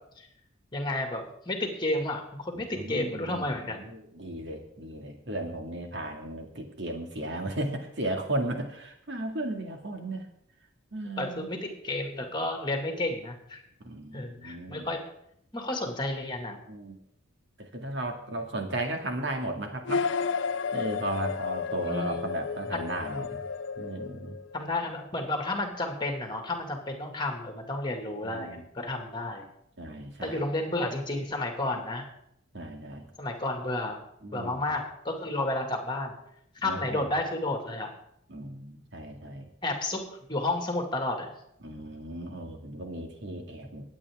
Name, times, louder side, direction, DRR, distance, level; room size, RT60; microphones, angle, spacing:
voice 1, 0.7-3.9 11.2-13.6 14.1-15.0 15.5-16.6 21.8-22.2 24.5-29.4 30.2-32.0 33.2-34.0 34.3-36.1 36.6-37.9 39.6-40.0 40.3-41.3, left 2 dB, 25° left, 3 dB, 2.1 m, -31 dB
voice 2, 2.5-10.3 10.9-11.5 13.8-14.9 16.7-17.0 17.6-20.0 20.7-23.4 23.8-24.4 28.2-28.7 29.8-30.4 32.5-33.1 34.2-34.8 36.6-37.1 38.3-39.5 41.6-43.8, right 1 dB, 60° right, 3 dB, 2.2 m, -35 dB
sound 1, 19.9-24.7, left 5 dB, 65° left, 0.5 m, -32 dB
22.5 x 8.8 x 3.6 m, 0.75 s
head